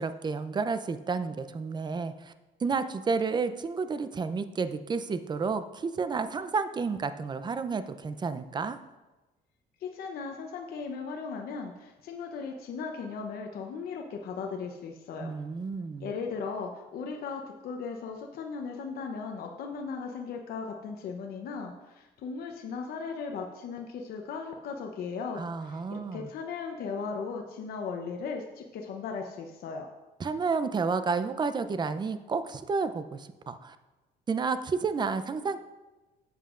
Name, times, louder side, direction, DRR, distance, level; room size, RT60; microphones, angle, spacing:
voice 1, 0.0-2.3 2.6-8.8 15.2-16.1 25.4-26.3 30.2-33.8 34.3-35.6, right 4 dB, 25° right, 11 dB, 0.6 m, -31 dB
voice 2, 9.8-15.3 16.0-29.9, left 5 dB, 65° left, 2 dB, 0.9 m, -37 dB
13.0 x 7.9 x 2.5 m, 1.1 s
cardioid pair, 110°, 17 cm